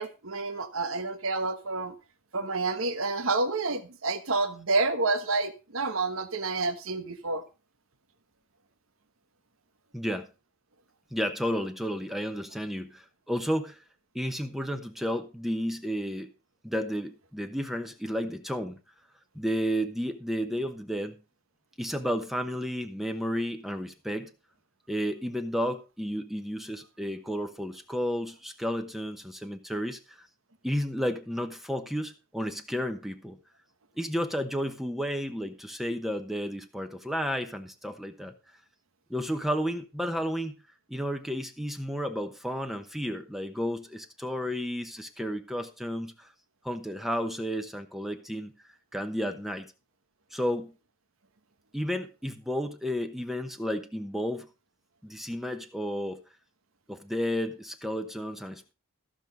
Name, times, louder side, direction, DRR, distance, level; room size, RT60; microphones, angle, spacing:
voice 1, 0.0-1.9 2.3-7.4, right 3 dB, 75° right, 1.2 m, -29 dB
voice 2, 9.9-10.3 11.1-13.8 14.1-16.3 16.6-18.8 19.3-21.2 21.8-24.3 24.9-30.3 30.6-33.4 34.0-38.3 39.1-40.5 40.9-46.3 46.6-48.5 48.9-49.7 50.3-50.7 51.7-54.5 55.0-56.2 56.9-58.7, equal, ahead, 0.9 m, -32 dB
14.5 x 6.3 x 5.2 m
head